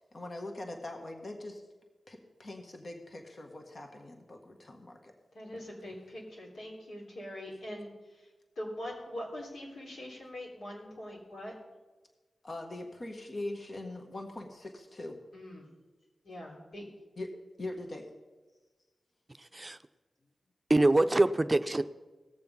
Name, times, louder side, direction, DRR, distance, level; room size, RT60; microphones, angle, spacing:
voice 1, 0.1-1.6 2.1-5.1 12.4-15.2 17.2-17.3 17.6-18.1, left 2 dB, 50° left, 3 dB, 1.6 m, -42 dB
voice 2, 5.3-7.9 8.5-11.5 15.3-15.7 16.2-16.8, left 1 dB, 80° left, -3 dB, 3.3 m, -42 dB
voice 3, 20.7-21.8, right 2 dB, 30° right, 10 dB, 0.6 m, -24 dB
18.0 x 7.0 x 5.4 m, 1.2 s
cardioid pair, 45°, 0 cm